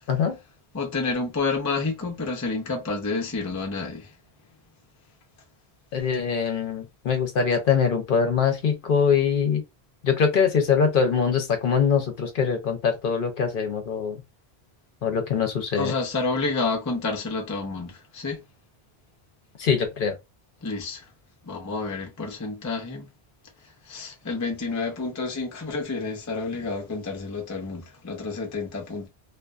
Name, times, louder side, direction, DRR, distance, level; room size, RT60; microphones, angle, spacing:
voice 1, 0.7-4.1 15.7-18.4 20.6-21.1 21.4-23.1 23.9-29.1, left 3 dB, 25° left, 0.4 m, -29 dB
voice 2, 5.9-9.6 10.0-14.2 15.0-15.9 19.6-20.2, left 6 dB, 60° left, 0.7 m, -23 dB
2.4 x 2.4 x 2.3 m
omnidirectional pair, 1.1 m